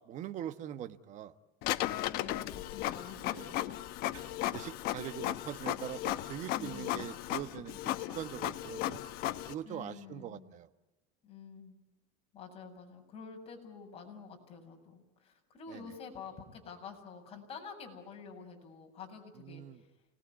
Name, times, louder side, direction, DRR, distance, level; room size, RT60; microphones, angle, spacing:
voice 1, 0.1-1.3 3.3-3.5 4.1-9.0 9.5-10.7 15.7-15.8 19.4-19.8, right 11 dB, 40° right, 9 dB, 1.3 m, -42 dB
Printer, 1.6-9.5, left 14 dB, 55° left, 1.2 m, -36 dB
voice 2, 2.1-3.6 6.5-7.1 9.6-10.5 11.2-11.8 12.3-19.9, left 5 dB, 30° left, 2 dB, 7.8 m, -48 dB
30.0 x 20.0 x 9.7 m, 1.1 s
supercardioid pair, 140°, 19 cm